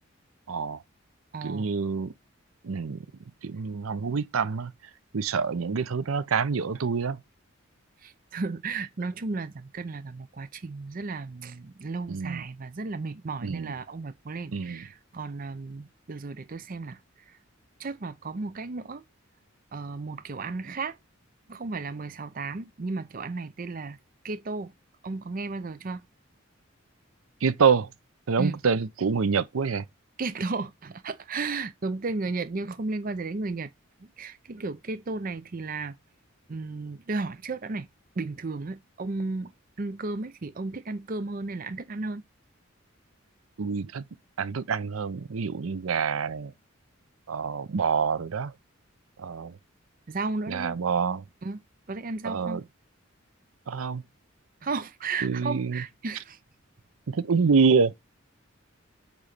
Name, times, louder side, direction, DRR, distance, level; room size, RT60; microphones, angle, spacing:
voice 1, 0.5-0.8 1.4-2.1 2.6-3.0 3.4-4.7 5.1-7.2 12.1-12.4 13.4-13.7 14.5-14.8 27.4-27.9 28.3-29.8 43.6-44.0 44.4-46.5 47.3-48.5 49.2-49.6 50.5-51.2 52.2-52.6 53.7-54.0 55.2-55.8 57.1-57.9, right 5 dB, 85° right, 0.6 m, -26 dB
voice 2, 1.3-1.7 8.0-17.0 17.3-17.4 17.8-19.0 19.7-21.0 21.5-24.0 24.2-24.7 25.0-26.0 28.4-28.6 30.2-33.7 34.0-36.0 36.5-37.9 38.2-39.5 39.8-42.2 50.1-50.8 51.4-51.6 51.9-52.6 54.6-56.4, right 3 dB, 40° right, 0.5 m, -34 dB
8.7 x 3.2 x 6.6 m
head